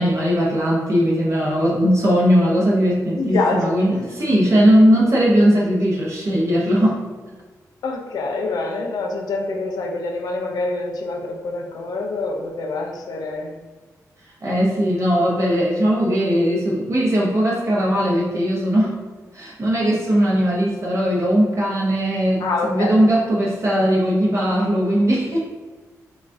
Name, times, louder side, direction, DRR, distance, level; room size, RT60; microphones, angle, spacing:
voice 1, 0.0-7.0 14.4-19.0 19.3-25.4, equal, 50° right, -4 dB, 0.8 m, -19 dB
voice 2, 3.2-4.1 7.8-13.5 22.4-23.0, left 3 dB, 85° left, 1 dB, 0.6 m, -26 dB
5.0 x 2.3 x 2.6 m, 1.4 s
cardioid pair, 80°, 7 cm